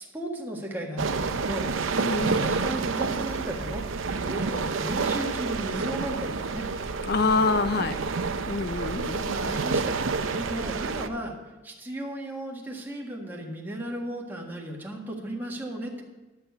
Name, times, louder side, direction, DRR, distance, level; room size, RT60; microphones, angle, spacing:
voice 1, 0.0-1.7 2.1-6.6 9.2-9.9 10.3-11.3 11.6-16.0, right 1 dB, 10° right, -1 dB, 1.7 m, -35 dB
sound 1, 1.0-11.1, right 4 dB, 85° right, 0.7 m, -29 dB
voice 2, 2.0-2.5 7.1-8.0 8.5-9.4, left 3 dB, 55° left, 11 dB, 0.5 m, -26 dB
11.0 x 7.0 x 6.9 m, 1.1 s
head